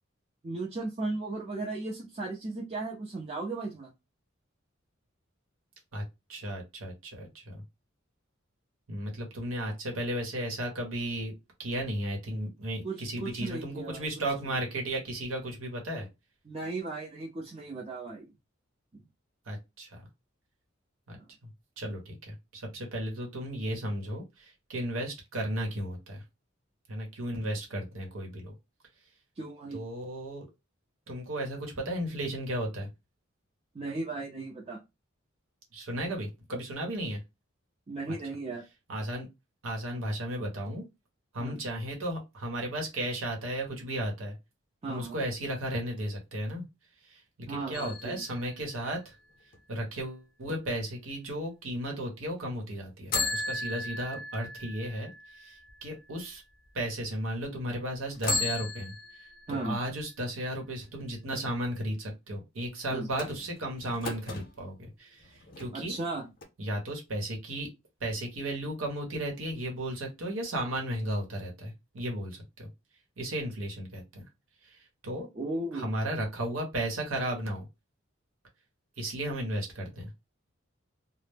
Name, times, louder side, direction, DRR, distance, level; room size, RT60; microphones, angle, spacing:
voice 1, 0.4-3.9 12.8-14.1 14.4-14.5 16.5-18.3 18.9-19.0 21.1-21.3 29.4-29.8 33.7-34.8 37.9-38.6 41.4-41.6 44.8-45.2 47.5-48.2 59.5-59.8 62.9-63.1 65.7-66.3 75.3-75.9, right 2 dB, 30° right, -3 dB, 0.5 m, -36 dB
voice 2, 6.3-7.6 8.9-11.3 11.6-16.1 19.5-20.1 21.1-21.2 21.4-21.5 21.8-26.2 26.9-28.5 29.7-30.5 31.1-32.9 35.7-37.2 38.1-38.2 38.9-39.3 39.6-40.9 41.3-44.4 44.9-46.6 47.0-49.1 49.7-56.4 56.7-58.9 59.5-66.0 66.6-67.7 68.0-72.7 73.2-74.2 74.6-75.3 75.7-77.7 79.0-80.1, right 1 dB, 85° right, 1 dB, 0.9 m, -34 dB
sound 1, 47.7-49.6 53.1-56.2 56.8-56.9 58.1-59.9 63.1-64.5 65.2-66.1 66.4-66.5, left 2 dB, 45° left, 0.6 m, -36 dB
2.1 x 2.0 x 3.3 m, 0.23 s
head